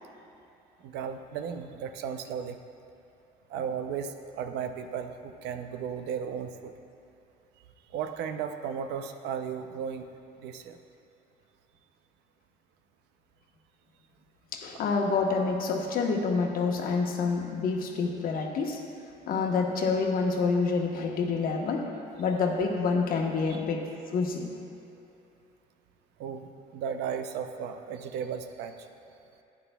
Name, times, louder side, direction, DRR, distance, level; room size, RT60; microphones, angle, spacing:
voice 1, 0.8-2.6 3.5-6.7 7.9-10.1 10.4-10.8 26.2-26.5 26.7-28.7, right 7 dB, 85° right, 7 dB, 0.6 m, -35 dB
voice 2, 14.5-18.8 19.3-21.9 22.2-23.9 24.1-24.5, left 4 dB, 60° left, 1 dB, 1.1 m, -27 dB
12.0 x 9.4 x 2.3 m, 2.8 s
cardioid pair, 110°, 17 cm